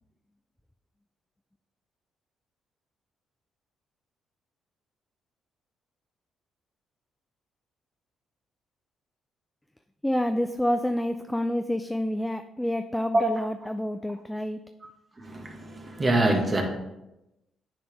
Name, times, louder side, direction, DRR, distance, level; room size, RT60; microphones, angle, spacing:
voice 1, 10.0-14.6, left 1 dB, 5° left, 0.4 m, -28 dB
voice 2, 15.2-16.6, right 2 dB, 35° right, 1.6 m, -24 dB
9.3 x 4.2 x 3.4 m
hypercardioid pair, 45°, 0 cm